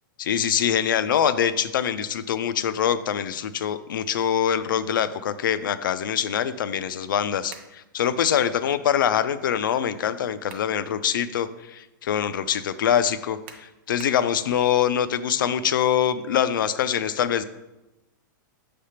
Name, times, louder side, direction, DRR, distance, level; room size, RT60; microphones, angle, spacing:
voice 1, 0.3-17.4, left 9 dB, 85° left, 13 dB, 0.5 m, -24 dB
sound 1, 7.5-7.8 10.1-10.8 11.3-11.4 13.5-14.3, right 7 dB, 35° right, 0.6 m, -45 dB
6.5 x 3.4 x 5.6 m, 0.99 s
supercardioid pair, 180°, 11 cm